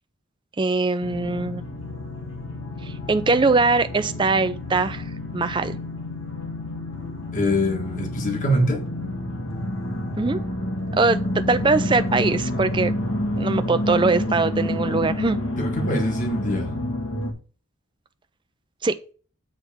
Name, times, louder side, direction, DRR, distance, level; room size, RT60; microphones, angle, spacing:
voice 1, 0.6-1.6 2.8-5.8 10.2-10.4 10.9-12.9 13.4-15.4 18.8-19.0, right 3 dB, 20° right, 0.4 m, -22 dB
sound 1, 1.0-17.3, left 1 dB, 65° left, 1.5 m, -29 dB
voice 2, 7.3-8.8 15.6-16.7, equal, 35° left, 1.4 m, -24 dB
8.0 x 3.4 x 5.8 m
head